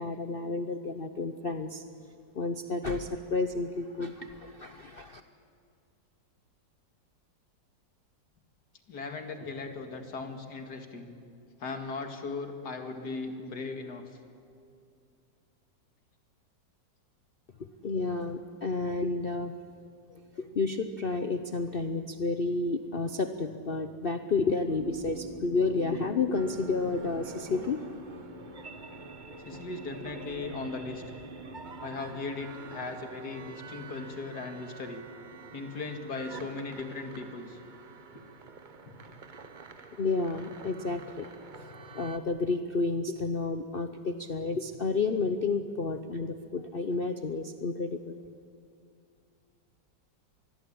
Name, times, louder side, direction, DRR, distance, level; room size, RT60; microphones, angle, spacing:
voice 1, 0.0-1.8 2.3-5.2 17.8-19.5 20.4-28.0 40.0-41.3 41.6-41.7 41.9-48.2, left 3 dB, 45° left, 8 dB, 0.8 m, -31 dB
voice 2, 8.9-11.1 11.6-14.0 29.4-31.0 31.8-35.0 35.5-37.6, left 3 dB, 60° left, 5 dB, 2.7 m, -38 dB
sound 1, 24.7-39.6, left 1 dB, 85° left, 3.0 m, -48 dB
sound 2, 26.3-42.2, right 5 dB, 35° right, 0.9 m, -47 dB
25.5 x 21.0 x 8.7 m, 2.4 s
omnidirectional pair, 1.9 m